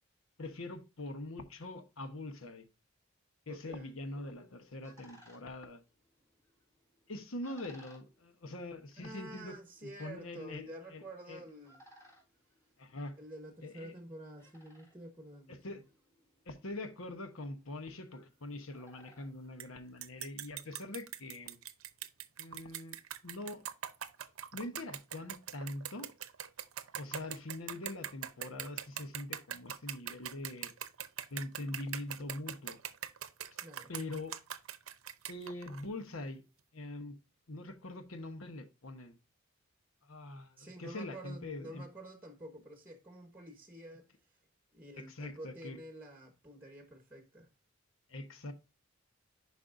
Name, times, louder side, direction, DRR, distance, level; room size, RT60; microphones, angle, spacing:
voice 1, 0.4-2.7 3.5-5.8 7.1-11.4 12.8-13.2 13.6-13.9 15.5-15.8 16.5-21.6 22.4-23.0 23.2-23.6 24.5-26.1 27.0-30.7 31.3-32.8 33.9-34.4 35.3-36.4 36.7-37.2 37.5-39.1 40.0-41.8 45.0-45.8 48.1-48.5, left 2 dB, 80° left, 1.1 m, -43 dB
voice 2, 3.5-3.9 9.0-11.8 13.2-15.8 33.6-33.9 40.6-44.1 44.7-47.5, right 1 dB, 10° right, 1.2 m, -49 dB
sound 1, 4.4-20.4, equal, 15° left, 3.6 m, -65 dB
sound 2, 19.6-19.7 20.0-35.8, right 10 dB, 90° right, 0.7 m, -42 dB
10.0 x 5.4 x 2.6 m
head